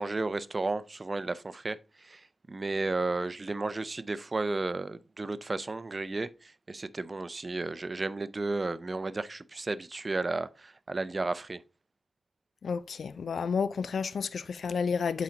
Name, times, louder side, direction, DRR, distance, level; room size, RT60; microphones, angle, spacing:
voice 1, 0.0-11.6, right 3 dB, 45° right, 0.5 m, -33 dB
voice 2, 12.6-15.2, left 5 dB, 80° left, 0.3 m, -31 dB
8.4 x 4.1 x 3.8 m
cardioid pair, 45°, 0 cm